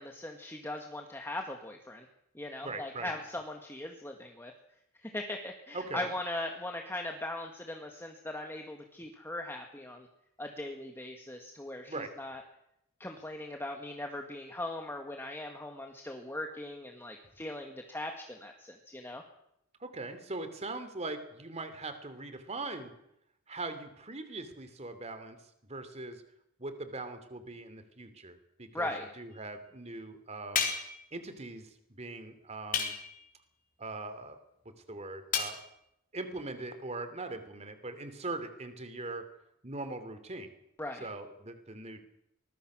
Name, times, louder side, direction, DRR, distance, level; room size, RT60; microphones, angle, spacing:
voice 1, 0.0-2.1 2.3-4.5 5.0-10.1 10.4-12.4 13.0-19.2 28.7-29.1 40.8-41.1, left 1 dB, 10° left, 3 dB, 1.8 m, -39 dB
voice 2, 2.6-3.1 5.7-6.1 11.9-12.1 19.8-22.9 23.5-25.4 25.7-26.2 26.6-28.9 29.2-30.7 31.1-33.0 33.8-34.4 34.9-35.6 36.1-39.2 39.6-40.5 41.0-42.0, right 2 dB, 30° right, 9 dB, 2.9 m, -41 dB
sound 1, 30.6-31.0 32.7-33.3 35.3-35.6, left 6 dB, 40° left, 4.0 m, -31 dB
24.5 x 21.0 x 6.3 m, 0.79 s
head